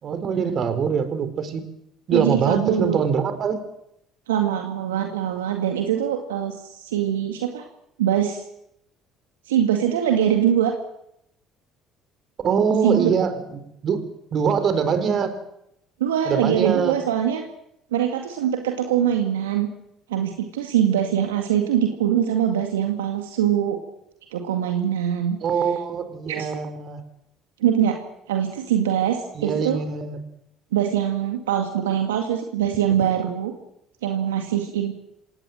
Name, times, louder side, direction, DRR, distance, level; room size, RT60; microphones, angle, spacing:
voice 1, 0.0-1.6 2.1-3.6 12.4-14.1 14.3-15.4 16.3-16.9 25.4-27.0 29.3-30.2, right 6 dB, 50° right, 10 dB, 4.4 m, -23 dB
voice 2, 2.1-3.0 4.3-7.6 8.0-8.4 9.5-10.7 12.8-13.1 16.0-17.4 17.9-19.7 20.1-23.8 24.3-25.4 26.3-26.5 27.6-28.0 28.3-29.8 30.7-33.5 34.0-34.9, right 9 dB, 85° right, 4 dB, 2.0 m, -23 dB
26.5 x 18.5 x 7.8 m, 0.79 s
hypercardioid pair, 60°, 0 cm